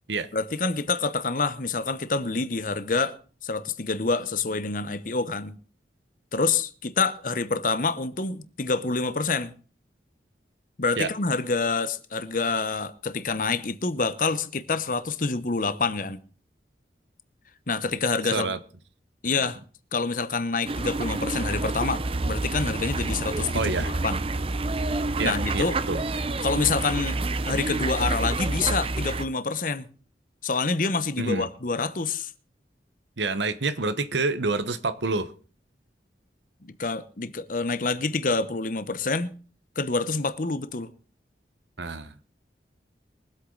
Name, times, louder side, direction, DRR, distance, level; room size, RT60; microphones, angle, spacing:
voice 1, 0.3-3.2 3.4-5.6 6.3-9.5 10.8-16.2 17.7-18.5 19.2-19.6 19.9-24.2 25.2-25.8 26.4-29.9 30.4-32.3 36.6-39.3 39.8-40.9, left 4 dB, 50° left, 0.9 m, -27 dB
sound 1, 20.7-29.3, right 2 dB, 30° right, 0.6 m, -28 dB
voice 2, 23.5-23.9 25.2-26.0 31.2-31.5 33.2-35.3 41.8-42.1, right 3 dB, 85° right, 1.1 m, -27 dB
22.5 x 8.2 x 3.9 m
head